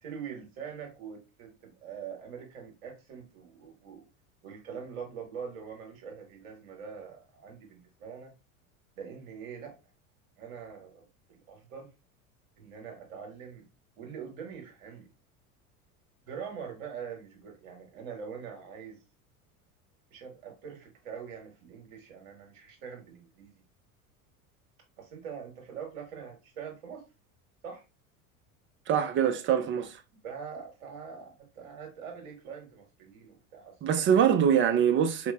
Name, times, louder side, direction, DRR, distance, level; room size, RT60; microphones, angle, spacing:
voice 1, 0.0-4.0 4.4-8.3 9.0-9.7 10.4-11.9 12.6-13.6 14.0-15.1 16.2-19.0 20.1-23.5 25.0-27.0 27.6-27.8 30.2-34.1, right 7 dB, 65° right, 1.7 m, -43 dB
voice 2, 28.9-29.9 33.8-35.3, right 8 dB, 30° right, 0.5 m, -24 dB
4.1 x 3.1 x 2.3 m
hypercardioid pair, 75°, 43 cm